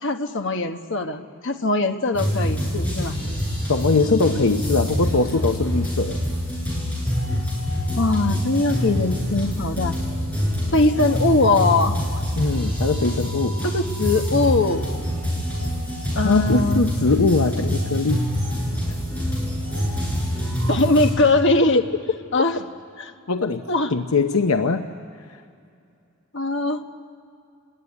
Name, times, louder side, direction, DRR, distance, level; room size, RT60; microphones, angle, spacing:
voice 1, 0.0-3.2 8.0-10.0 10.7-12.0 13.6-14.8 16.1-16.8 20.6-21.8 22.3-22.6 23.0-23.1 23.7-23.9 26.3-26.8, left 2 dB, 60° left, 6 dB, 1.3 m, -21 dB
sound 1, 2.2-21.1, equal, 5° left, 7.4 m, -25 dB
voice 2, 3.7-6.2 12.4-13.6 16.2-18.2 23.3-24.9, left 3 dB, 85° left, 7 dB, 0.9 m, -21 dB
27.0 x 20.5 x 9.7 m, 2.5 s
head